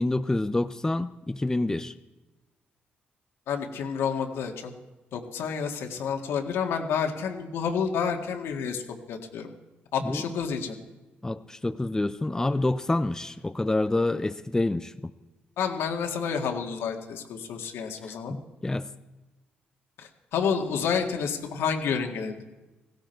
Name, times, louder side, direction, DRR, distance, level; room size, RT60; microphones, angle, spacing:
voice 1, 0.0-1.9 10.0-10.2 11.2-14.9 18.0-18.9, left 2 dB, 15° left, 11 dB, 0.6 m, -27 dB
voice 2, 3.5-4.7 5.1-8.8 9.1-9.5 9.9-10.8 15.6-18.3 20.0-22.4, left 6 dB, 80° left, 3 dB, 2.0 m, -29 dB
16.5 x 16.5 x 4.6 m, 1.1 s
cardioid pair, 80°, 4 cm